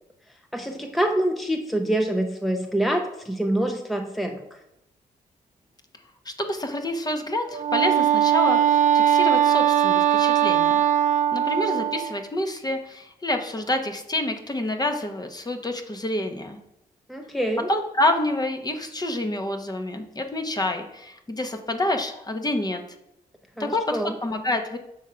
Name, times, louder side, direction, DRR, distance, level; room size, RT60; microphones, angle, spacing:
voice 1, 0.5-4.4 17.1-17.7 23.6-24.1, right 1 dB, ahead, 3 dB, 0.7 m, -26 dB
voice 2, 6.2-10.8 11.3-16.6 17.7-22.8 23.6-24.8, left 1 dB, 25° left, 5 dB, 0.9 m, -28 dB
Wind instrument woodwind instrument, 7.5-12.2, right 10 dB, 55° right, 0.4 m, -20 dB
6.4 x 3.6 x 5.6 m, 0.83 s
cardioid pair, 65°, 16 cm